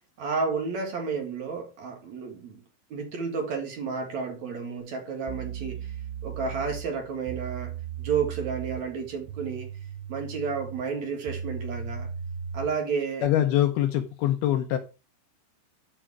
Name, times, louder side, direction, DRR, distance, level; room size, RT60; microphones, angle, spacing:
voice 1, 0.2-2.6 2.9-5.9 6.2-9.7 10.1-12.1 12.5-13.3 14.7-14.8, right 5 dB, 55° right, 2.2 m, -31 dB
sound 1, 4.8-4.9 5.3-12.8, right 8 dB, 75° right, 3.4 m, -37 dB
voice 2, 13.2-14.8, left 12 dB, 80° left, 2.2 m, -24 dB
11.5 x 5.0 x 4.7 m
omnidirectional pair, 5.6 m